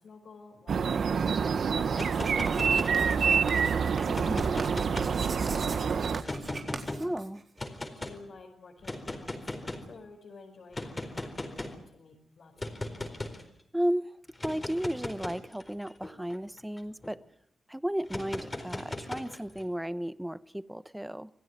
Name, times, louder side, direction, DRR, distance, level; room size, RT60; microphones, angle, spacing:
voice 1, 0.0-3.8 4.2-6.4 7.9-13.1, left 3 dB, 65° left, 5.1 m, -52 dB
sound 1, 0.7-6.2, right 6 dB, 65° right, 1.2 m, -27 dB
sound 2, 1.8-3.4 4.0-5.6 6.2-7.0 7.6-8.2 8.8-9.9 10.7-11.8 12.6-13.4 14.3-17.1 18.1-19.6, left 2 dB, 25° left, 4.3 m, -38 dB
Writing, 1.9-7.8, right 4 dB, 50° right, 4.2 m, -41 dB
voice 2, 4.1-4.6 7.0-7.4 13.7-14.2 14.4-17.2 17.7-21.3, equal, 5° right, 1.0 m, -34 dB
27.0 x 17.0 x 9.4 m
cardioid pair, 75°, 0 cm